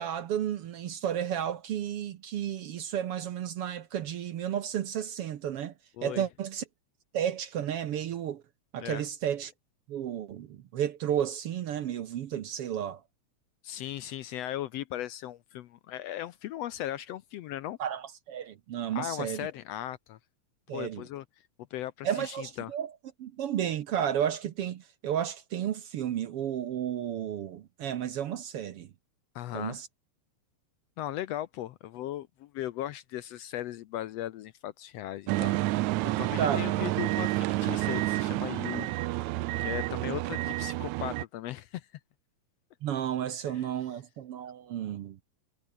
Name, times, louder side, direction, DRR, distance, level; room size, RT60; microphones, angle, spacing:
voice 1, 0.0-5.7 6.0-6.6 7.1-8.4 8.7-9.5 9.9-13.0 17.8-19.5 20.7-21.0 22.0-22.9 23.2-28.9 29.5-29.9 36.4-36.7 42.8-45.2, right 10 dB, 60° right, 1.7 m, -32 dB
voice 2, 13.6-17.8 18.9-20.2 20.7-21.2 21.7-22.7 29.3-29.8 31.0-35.9 36.2-38.9 39.6-41.9 43.5-43.7, left 13 dB, 70° left, 1.6 m, -37 dB
sound 1, 35.3-41.2, right 17 dB, 80° right, 2.0 m, -29 dB
omnidirectional pair, 3.4 m